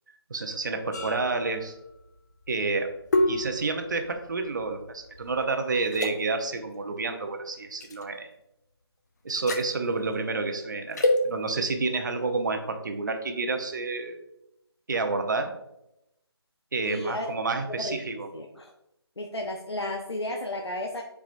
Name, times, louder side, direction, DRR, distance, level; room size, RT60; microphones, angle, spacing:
voice 1, 0.3-1.8 2.5-2.9 3.3-8.3 9.2-14.2 14.9-15.5 16.7-18.3, right 3 dB, 45° right, 6 dB, 0.9 m, -29 dB
sound 1, 0.9-5.4 5.9-6.1 7.8-8.0 9.3-9.7 10.9-11.2, left 2 dB, 40° left, 0.8 m, -29 dB
voice 2, 16.8-17.3 17.8-18.0 18.3-18.7 19.2-21.0, left 1 dB, 75° left, 1 dB, 0.9 m, -33 dB
8.8 x 4.8 x 2.6 m, 0.85 s
figure-of-eight pair, 155°, 14 cm